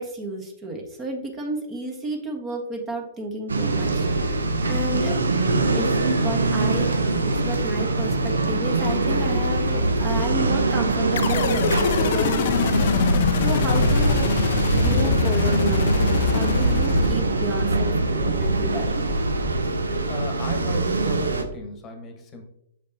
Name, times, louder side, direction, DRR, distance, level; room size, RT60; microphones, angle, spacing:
voice 1, 0.0-5.2 5.7-5.9 6.2-6.9 7.2-14.3 14.7-18.9, right 2 dB, 20° right, 2 dB, 1.3 m, -31 dB
sound 1, 3.5-21.4, right 2 dB, 75° right, 0.8 m, -23 dB
sound 2, 11.2-17.6, left 9 dB, 50° left, 0.5 m, -25 dB
voice 2, 20.1-22.4, left 2 dB, 25° left, 4 dB, 1.2 m, -36 dB
6.8 x 5.1 x 2.8 m, 0.77 s
figure-of-eight pair, 115°, 0 cm